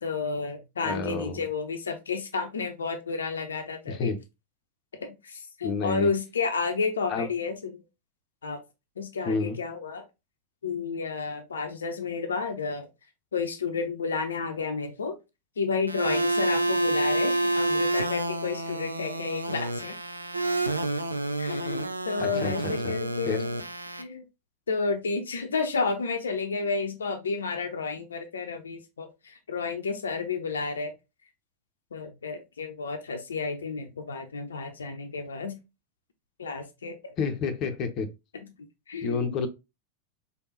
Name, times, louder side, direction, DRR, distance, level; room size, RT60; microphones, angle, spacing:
voice 1, 0.0-4.1 5.0-7.8 8.4-8.6 9.0-10.0 10.6-12.9 13.3-15.2 15.6-20.0 21.4-23.6 23.9-24.2 24.7-30.9 31.9-35.6 36.4-37.0 38.9-39.4, left 4 dB, 70° left, 6 dB, 0.6 m, -31 dB
voice 2, 0.8-1.5 3.9-4.2 5.6-6.1 7.1-7.3 9.2-9.6 22.2-22.9 23.3-23.4 37.2-38.1 39.0-39.5, left 4 dB, 35° left, 6 dB, 0.7 m, -30 dB
sound 1, 15.9-24.0, right 2 dB, 85° right, 0.4 m, -28 dB
4.1 x 3.5 x 2.7 m, 0.24 s
figure-of-eight pair, 90°, 0 cm